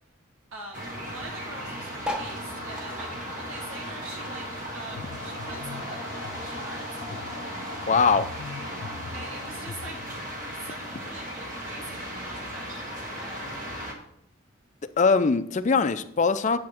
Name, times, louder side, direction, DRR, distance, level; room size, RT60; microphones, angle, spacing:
voice 1, 0.5-4.4 4.7-6.1 6.4-7.3 9.1-10.0 10.5-13.4, right 2 dB, 75° right, 1.6 m, -43 dB
sound 1, 0.7-13.9, equal, 40° right, 1.8 m, -36 dB
sound 2, 2.0-4.8 5.1-6.6 7.1-7.2 7.4-7.5 7.7-8.1 8.8-8.9, left 1 dB, 5° right, 0.8 m, -38 dB
sound 3, 4.9-10.0, left 5 dB, 90° left, 0.5 m, -42 dB
voice 2, 7.9-8.3 15.0-16.6, left 4 dB, 35° left, 0.4 m, -21 dB
8.4 x 7.5 x 4.3 m
head